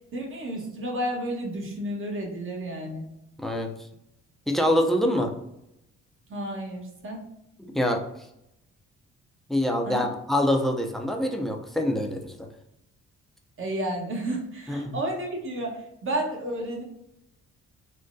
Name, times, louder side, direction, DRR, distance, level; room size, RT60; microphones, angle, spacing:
voice 1, 0.0-3.1 6.3-7.3 9.8-10.1 13.6-16.8, right 1 dB, 45° right, 0 dB, 1.1 m, -31 dB
voice 2, 3.4-3.7 4.5-5.3 7.7-8.0 9.5-12.5 14.7-15.0, left 1 dB, ahead, 3 dB, 0.5 m, -25 dB
3.7 x 2.2 x 2.5 m, 0.83 s
cardioid pair, 80°, 29 cm